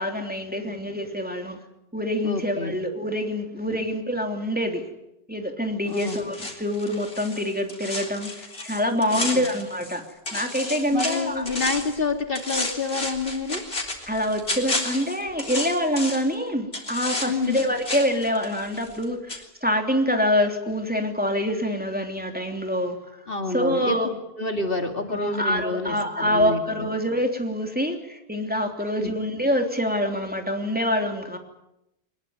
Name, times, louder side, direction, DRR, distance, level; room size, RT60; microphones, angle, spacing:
voice 1, 0.0-1.6 1.9-4.8 5.3-10.0 10.3-11.4 14.1-24.2 25.1-31.4, equal, 10° right, 3 dB, 3.2 m, -26 dB
voice 2, 2.2-2.8 3.7-3.8 5.9-6.3 9.1-9.5 10.9-13.6 17.2-17.6 23.3-24.0 24.4-26.9 29.0-29.1, left 3 dB, 65° left, 5 dB, 2.8 m, -28 dB
sound 1, 5.9-10.0 10.3-12.0 12.4-16.3 16.7-19.0 19.3-19.4, left 2 dB, 85° left, 4.0 m, -32 dB
23.0 x 21.0 x 9.6 m, 0.85 s
omnidirectional pair, 1.0 m